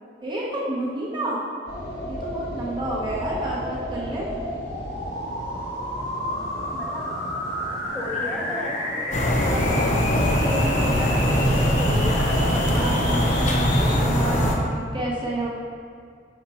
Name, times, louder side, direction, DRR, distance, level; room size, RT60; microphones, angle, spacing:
voice 1, 0.2-1.4 2.1-4.3 12.7-15.5, right 1 dB, 25° right, -6 dB, 0.9 m, -30 dB
sound 1, 1.7-14.0, left 1 dB, 75° left, 1.4 m, -31 dB
voice 2, 6.7-7.0 7.9-9.6 10.1-13.3 14.2-14.8, equal, 5° left, -7 dB, 1.0 m, -33 dB
sound 2, 9.1-14.6, equal, 45° left, 0.7 m, -21 dB
5.4 x 4.2 x 4.2 m, 2.2 s
head